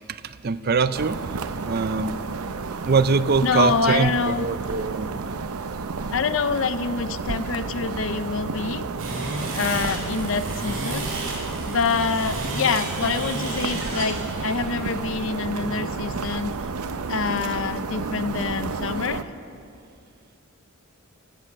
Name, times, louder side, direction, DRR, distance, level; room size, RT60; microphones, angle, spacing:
voice 1, 0.1-1.2 1.7-2.1 2.7-5.2, right 4 dB, 45° right, 13 dB, 0.5 m, -23 dB
sound 1, 0.9-19.2, right 4 dB, 85° right, 0.6 m, -31 dB
voice 2, 3.4-4.5 6.1-8.9 9.5-11.1 11.7-16.6 17.1-19.2, left 5 dB, 60° left, 12 dB, 0.5 m, -26 dB
sound 2, 9.0-18.2, right 2 dB, 60° right, 3.7 m, -34 dB
23.0 x 8.4 x 6.4 m, 2.5 s
head